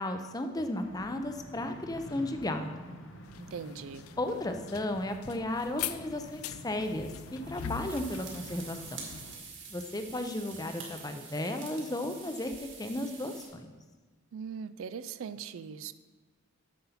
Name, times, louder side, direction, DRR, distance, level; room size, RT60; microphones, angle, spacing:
voice 1, 0.0-2.8 4.2-8.8 9.7-12.5 12.8-13.7, left 1 dB, 15° left, 7 dB, 0.5 m, -34 dB
sound 1, 0.8-9.4, equal, 60° left, 0.9 m, -49 dB
sound 2, 3.3-9.3, left 9 dB, 90° left, 0.4 m, -42 dB
voice 2, 3.4-4.1 14.3-15.9, right 6 dB, 70° right, 14 dB, 0.4 m, -40 dB
sound 3, 5.4-6.1 7.2-13.5, right 5 dB, 55° right, 2.0 m, -47 dB
7.7 x 7.1 x 5.7 m, 1.3 s
head